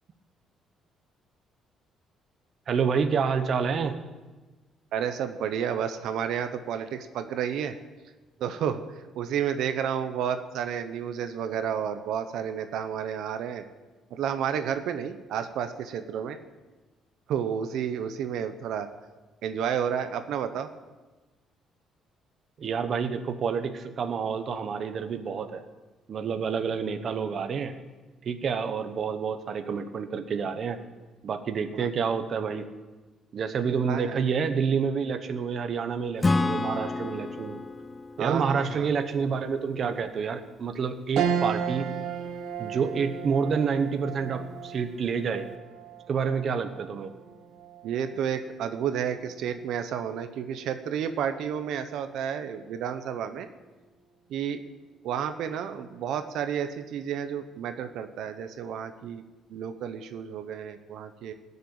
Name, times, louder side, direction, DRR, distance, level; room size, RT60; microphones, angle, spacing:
voice 1, 2.7-4.0 22.6-25.6 26.1-27.7 28.2-30.8 31.2-32.6 33.3-37.6 38.2-41.9 42.6-45.5 46.1-47.1, right 6 dB, 40° right, 8 dB, 1.0 m, -28 dB
voice 2, 4.9-7.8 8.4-13.6 14.1-16.4 17.3-18.9 19.4-20.7 31.7-31.9 33.9-34.2 38.2-38.9 47.8-53.5 54.3-54.6 55.0-59.2 59.5-61.3, right 8 dB, 70° right, 9 dB, 0.9 m, -31 dB
Acoustic guitar / Strum, 36.2-39.8, left 3 dB, 15° left, 0.3 m, -30 dB
sound 1, 41.2-50.8 51.2-51.3 52.7-53.1, right 7 dB, 85° right, 1.5 m, -35 dB
19.0 x 6.8 x 8.7 m, 1.2 s
cardioid pair, 160°, 0 cm